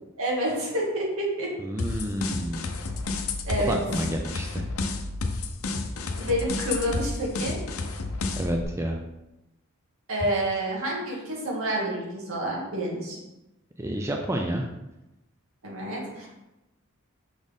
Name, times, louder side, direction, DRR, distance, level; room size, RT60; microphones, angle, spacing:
voice 1, 0.2-1.5 3.4-3.8 6.2-7.6 10.1-13.2 15.6-16.3, right 1 dB, 80° right, -4 dB, 2.1 m, -28 dB
voice 2, 1.6-2.6 3.6-4.6 8.4-9.0 13.8-14.7, right 1 dB, 15° right, 2 dB, 0.4 m, -29 dB
sound 1, 1.8-8.6, left 3 dB, 80° left, 0.6 m, -31 dB
6.3 x 4.2 x 3.5 m, 0.95 s
head